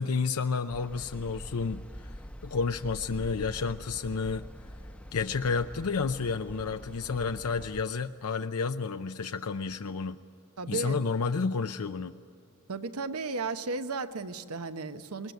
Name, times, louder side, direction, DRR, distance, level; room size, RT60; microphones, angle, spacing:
voice 1, 0.0-2.1 2.4-4.4 5.1-10.2 10.7-12.1, left 5 dB, 75° left, 8 dB, 0.6 m, -31 dB
sound 1, 0.7-7.8, equal, 5° left, 0.8 m, -45 dB
voice 2, 10.6-11.0 12.7-15.3, right 4 dB, 80° right, 10 dB, 1.0 m, -34 dB
20.5 x 19.5 x 9.2 m, 2.6 s
head